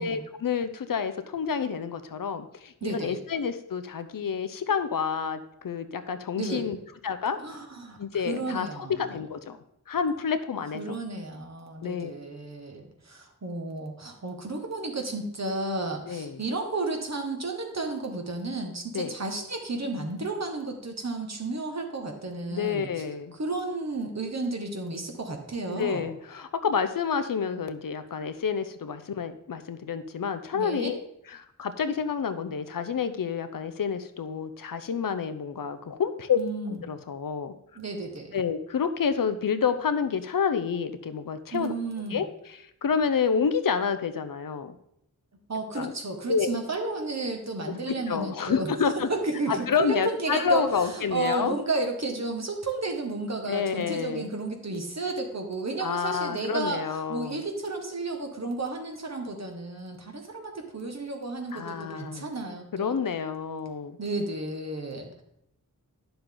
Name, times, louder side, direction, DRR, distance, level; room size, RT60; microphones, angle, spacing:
voice 1, 0.0-6.8 7.0-7.4 8.0-9.6 9.9-10.8 11.8-12.1 16.1-16.4 18.9-19.1 22.5-23.4 25.8-31.0 31.3-36.4 36.7-37.5 38.3-41.7 42.1-42.3 42.8-44.7 45.7-45.9 46.3-46.6 47.7-49.1 49.5-51.5 53.4-54.3 55.8-57.4 61.5-62.3 62.7-64.0, left 6 dB, 90° left, 10 dB, 0.7 m, -29 dB
voice 2, 2.8-3.2 6.3-6.7 7.4-8.0 8.3-9.2 10.7-22.9 23.3-26.1 30.5-30.9 36.3-36.8 37.7-38.4 41.5-42.2 45.5-48.7 49.1-56.8 57.1-63.0 64.0-65.1, right 3 dB, 55° right, 3 dB, 1.6 m, -32 dB
10.0 x 6.9 x 3.9 m, 0.77 s
wide cardioid pair, 70°, 32 cm